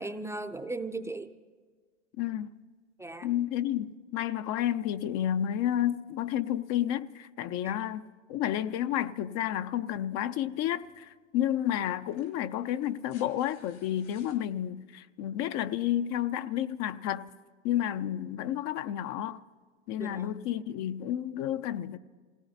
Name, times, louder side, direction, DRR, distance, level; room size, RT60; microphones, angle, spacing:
voice 1, 0.0-1.3 3.0-3.3 7.6-7.8 20.0-20.3, right 2 dB, 10° right, 0.5 m, -37 dB
voice 2, 2.2-2.5 3.2-17.3 17.6-19.4 19.9-22.0, left 11 dB, 50° left, 0.6 m, -31 dB
sound 1, 10.8-11.0 12.0-14.4 15.9-16.0, left 5 dB, 80° left, 5.8 m, -59 dB
27.5 x 17.0 x 2.8 m
hypercardioid pair, 95°, 36 cm